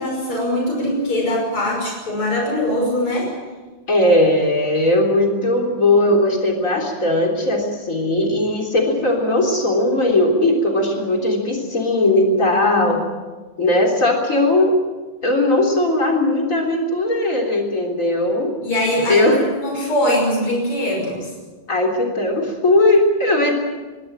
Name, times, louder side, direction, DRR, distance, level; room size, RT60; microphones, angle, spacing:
voice 1, 0.0-3.3 12.8-12.9 18.6-21.3, left 1 dB, 80° left, 0 dB, 6.7 m, -22 dB
voice 2, 3.9-13.0 13.6-14.8 15.2-18.5 19.1-19.4 21.7-23.5, left 1 dB, 35° left, 1 dB, 4.0 m, -18 dB
22.5 x 16.5 x 8.8 m, 1.3 s
omnidirectional pair, 2.4 m